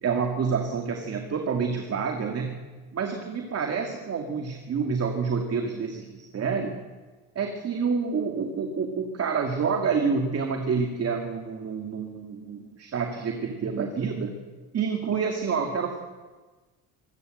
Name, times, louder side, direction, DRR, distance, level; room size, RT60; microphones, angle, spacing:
voice 1, 0.0-2.6 2.9-6.8 7.4-14.3 14.7-16.0, right 5 dB, 40° right, 4 dB, 2.3 m, -28 dB
25.0 x 16.0 x 7.9 m, 1.3 s
cardioid pair, 145°, 38 cm